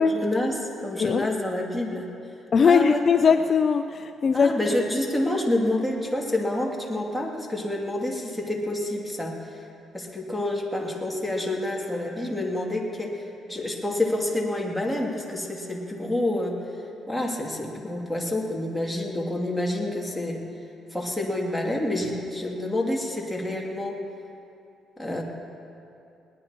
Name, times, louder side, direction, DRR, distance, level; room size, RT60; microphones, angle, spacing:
voice 1, 0.0-2.1 2.6-3.0 4.3-9.6 9.9-16.6 17.1-20.4 20.9-24.0 25.0-25.2, left 1 dB, 5° left, -2 dB, 2.7 m, -28 dB
voice 2, 2.5-4.5, left 6 dB, 45° left, 9 dB, 0.5 m, -20 dB
21.5 x 19.0 x 3.0 m, 2.7 s
cardioid pair, 90°, 0 cm